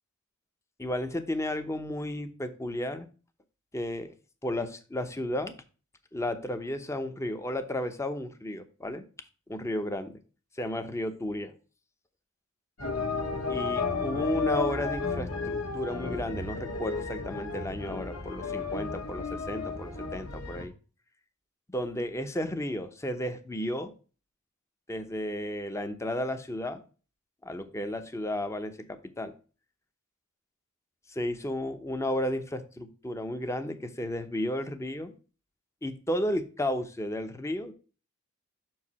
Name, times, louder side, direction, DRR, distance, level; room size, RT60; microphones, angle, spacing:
voice 1, 0.8-3.1 3.7-4.1 4.4-5.5 6.1-9.0 9.5-10.2 10.6-11.5 13.5-20.7 21.7-23.9 24.9-26.8 27.4-29.3 31.1-35.1 35.8-37.7, left 1 dB, 15° left, 9 dB, 0.7 m, -33 dB
sound 1, 12.8-20.7, left 4 dB, 85° left, 1.5 m, -33 dB
6.5 x 4.8 x 4.1 m, 0.36 s
head